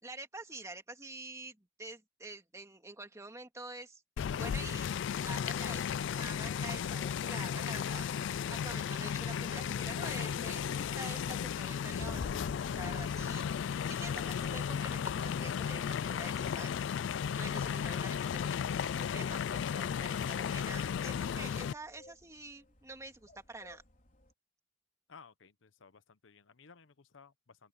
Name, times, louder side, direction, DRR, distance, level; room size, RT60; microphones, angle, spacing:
voice 1, 0.0-4.0 4.4-4.9 5.2-8.1 8.5-12.3 12.7-16.7 17.4-23.8, right 2 dB, 15° right, 2.3 m, -47 dB
sound 1, 4.2-21.7, left 7 dB, 70° left, 0.3 m, -35 dB
sound 2, 6.1-6.6 7.2-7.3 7.5-7.6 8.5-8.9 9.2-10.4 10.7-11.2 11.9-13.8, left 1 dB, 25° left, 0.9 m, -48 dB
sound 3, 18.8-24.3, left 1 dB, 45° left, 4.2 m, -61 dB
voice 2, 25.1-27.7, left 5 dB, 85° left, 0.9 m, -58 dB
open air
head